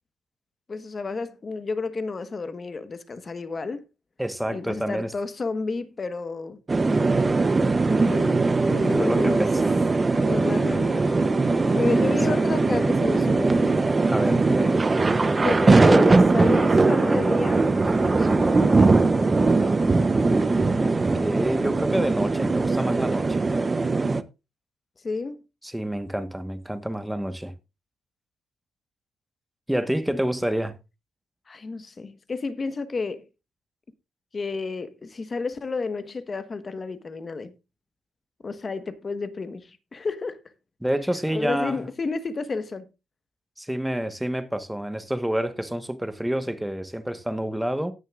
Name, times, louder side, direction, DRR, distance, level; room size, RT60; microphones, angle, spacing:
voice 1, 0.7-3.8 4.5-6.6 7.9-9.5 10.2-11.1 11.7-13.7 14.9-15.0 15.4-18.9 25.0-25.4 30.1-30.2 31.5-33.3 34.3-37.5 38.4-40.4 41.3-42.9, left 4 dB, 35° left, 1.3 m, -31 dB
voice 2, 4.2-5.1 8.8-9.8 12.3-12.4 14.1-14.8 20.8-23.5 25.6-27.5 29.7-30.8 40.8-41.9 43.6-47.9, right 1 dB, 5° right, 1.2 m, -28 dB
sound 1, 6.7-24.2, right 3 dB, 25° right, 0.7 m, -20 dB
sound 2, 10.1-19.8, left 2 dB, 15° left, 1.6 m, -38 dB
18.0 x 6.5 x 2.4 m
cardioid pair, 90°, 0 cm